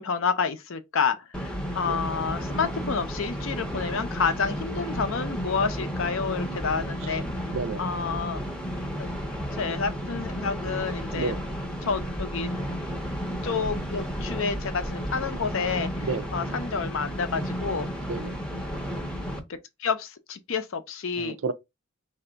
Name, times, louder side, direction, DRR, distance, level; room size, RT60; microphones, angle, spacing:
voice 1, 0.0-7.2 7.8-8.4 9.0-9.1 9.5-11.3 11.8-12.5 13.2-17.9 19.5-21.4, left 5 dB, 70° left, 0.6 m, -29 dB
sound 1, 1.3-19.4, equal, 5° left, 0.6 m, -32 dB
voice 2, 7.5-7.8 11.1-11.4 16.0-16.3 18.0-18.4 21.2-21.5, right 4 dB, 70° right, 0.5 m, -31 dB
3.3 x 2.7 x 3.9 m
head